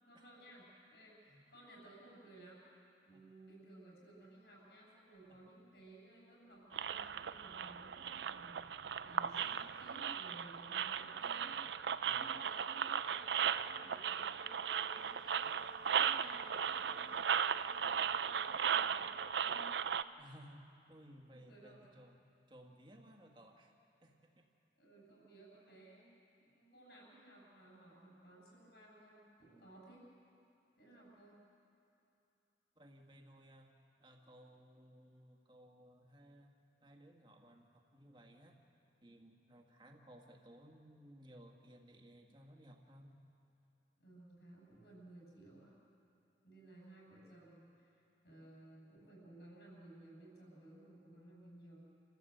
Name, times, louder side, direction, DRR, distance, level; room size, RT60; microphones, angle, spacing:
voice 1, 0.0-2.6 3.1-11.6 12.0-15.5 15.8-17.2 17.6-19.2 19.4-19.7 21.3-21.9 24.8-26.1 26.4-30.0 30.8-31.4 44.0-45.7 46.4-51.8, right 1 dB, 65° left, -3 dB, 7.6 m, -58 dB
sound 1, 6.7-20.0, right 8 dB, 75° right, 0.5 m, -37 dB
sound 2, 11.4-20.5, left 4 dB, 25° left, 1.2 m, -63 dB
voice 2, 20.2-22.2 22.5-23.7 24.0-24.5 32.8-36.5 36.8-38.6 39.0-43.2, equal, 25° right, 2 dB, 1.9 m, -59 dB
28.5 x 15.5 x 8.0 m, 2.9 s
head